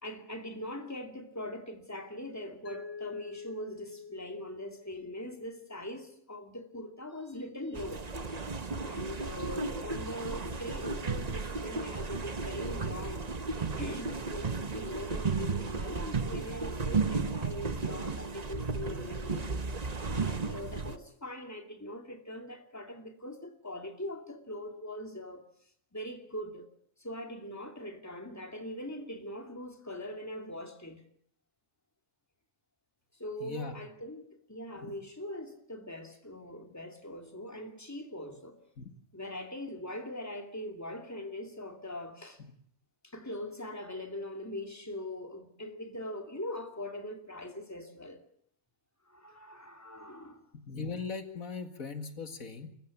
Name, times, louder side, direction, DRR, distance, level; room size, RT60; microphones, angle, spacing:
voice 1, 0.0-8.5 8.8-13.3 13.8-25.4 25.9-26.6 27.0-31.0 33.2-38.6 39.1-42.4 43.0-48.2 49.1-50.5, left 1 dB, 10° left, 2.7 m, -42 dB
Mallet percussion, 2.7-5.6, left 5 dB, 65° left, 2.9 m, -46 dB
sound 1, 7.7-21.0, right 4 dB, 30° right, 1.1 m, -34 dB
voice 2, 33.4-33.8 34.8-34.9 38.8-38.9 50.7-52.7, left 5 dB, 90° left, 2.5 m, -39 dB
27.5 x 15.0 x 8.6 m
omnidirectional pair, 1.4 m